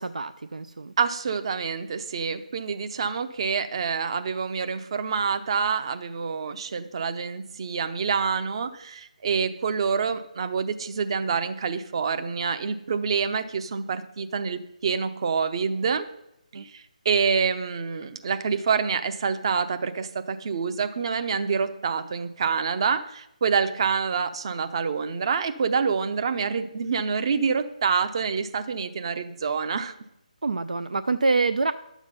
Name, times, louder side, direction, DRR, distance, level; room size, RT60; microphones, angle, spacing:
voice 1, 0.0-0.9 16.5-16.6 30.4-31.7, right 3 dB, 65° right, 11 dB, 0.4 m, -26 dB
voice 2, 1.0-16.1 16.5-29.9, right 5 dB, 40° right, 10 dB, 0.8 m, -27 dB
11.0 x 7.2 x 5.6 m, 0.82 s
figure-of-eight pair, 150°, 4 cm